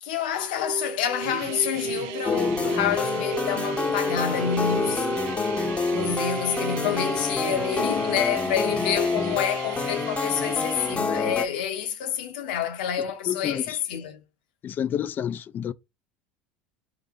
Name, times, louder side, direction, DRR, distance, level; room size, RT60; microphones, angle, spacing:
voice 1, 0.0-5.1 5.8-14.2, left 9 dB, 75° left, 0.9 m, -28 dB
sound 1, 0.6-7.9, right 4 dB, 10° right, 1.1 m, -35 dB
sound 2, 1.2-11.0, right 13 dB, 70° right, 0.4 m, -38 dB
sound 3, 2.2-11.5, left 4 dB, 25° left, 0.8 m, -27 dB
voice 2, 13.3-13.8 14.6-15.7, left 9 dB, 40° left, 0.4 m, -29 dB
3.9 x 2.6 x 4.7 m
hypercardioid pair, 85°, 5 cm